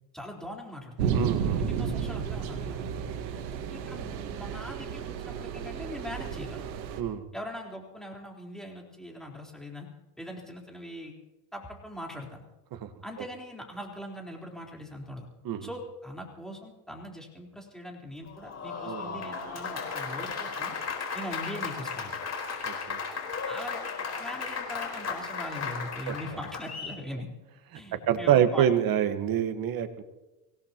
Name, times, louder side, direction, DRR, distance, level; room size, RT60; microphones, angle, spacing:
voice 1, 0.1-2.8 3.7-6.7 7.3-9.9 10.2-11.1 11.5-12.4 13.0-15.3 15.6-20.8 21.1-22.1 23.5-23.8 24.2-27.3 27.7-28.8, equal, ahead, -1 dB, 4.1 m, -41 dB
sound 1, 1.0-7.0, right 7 dB, 85° right, 1.9 m, -32 dB
voice 2, 1.1-1.6 7.0-7.2 12.8-12.9 15.4-15.7 18.9-19.1 22.7-23.0 26.1-26.2 28.1-30.0, right 10 dB, 45° right, 9 dB, 1.6 m, -26 dB
Applause, 18.3-27.0, left 5 dB, 30° left, 4.3 m, -35 dB
24.5 x 17.5 x 3.0 m, 1.0 s
supercardioid pair, 100°, 50 cm